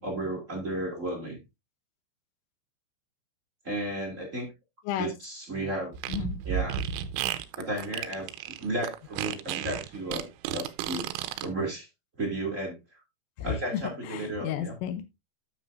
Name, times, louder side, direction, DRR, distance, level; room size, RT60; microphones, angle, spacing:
voice 1, 0.0-1.4 3.6-4.5 4.9-5.9 6.4-6.8 7.5-8.3 8.6-11.1 11.4-11.9 12.2-12.8 13.4-14.7, right 1 dB, 30° right, 0 dB, 1.3 m, -33 dB
Fart, 5.9-11.5, right 10 dB, 85° right, 3.3 m, -32 dB
voice 2, 6.1-6.4 13.4-15.0, left 10 dB, 80° left, 8 dB, 3.3 m, -33 dB
9.8 x 8.6 x 2.6 m, 0.22 s
omnidirectional pair, 6.0 m